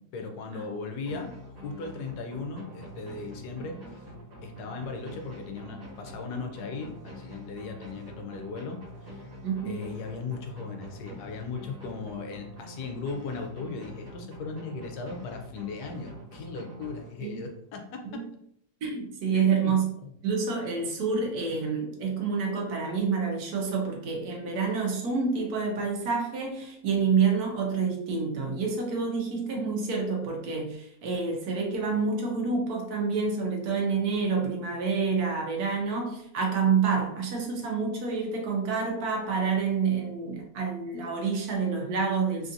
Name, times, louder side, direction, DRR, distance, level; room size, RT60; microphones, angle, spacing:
voice 1, 0.1-1.3 1.6-4.0 4.4-9.2 9.6-18.2 19.3-19.7 20.0-20.1, left 4 dB, 90° left, 4 dB, 1.2 m, -37 dB
sound 1, 1.0-17.6, equal, 35° right, 1.2 m, -45 dB
voice 2, 9.4-10.0 17.2-17.4 18.0-18.3 18.8-19.8 20.2-42.5, right 5 dB, 70° right, 0 dB, 1.2 m, -28 dB
3.4 x 2.5 x 2.6 m, 0.72 s
omnidirectional pair, 1.7 m